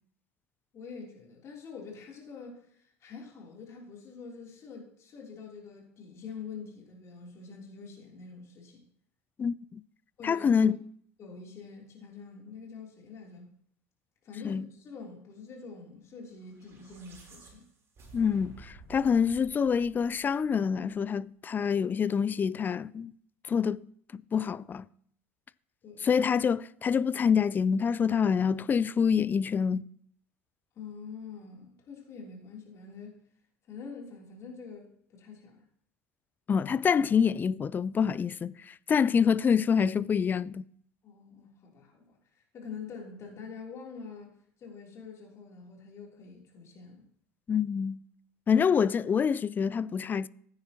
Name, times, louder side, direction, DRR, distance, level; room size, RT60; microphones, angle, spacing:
voice 1, 0.7-8.8 10.2-10.8 11.2-13.4 14.2-17.6 25.8-26.2 30.7-33.2 33.7-35.6 41.0-47.1, left 5 dB, 40° left, 3.2 m, -45 dB
voice 2, 9.4-9.8 10.2-10.8 14.4-14.7 18.1-23.1 23.5-23.8 24.1-24.8 26.0-29.9 36.5-40.6 47.5-48.0 48.5-50.3, left 6 dB, 25° left, 0.4 m, -26 dB
sound 1, 16.4-20.8, right 4 dB, 35° right, 3.6 m, -53 dB
15.0 x 9.5 x 2.9 m
figure-of-eight pair, 70°, 7 cm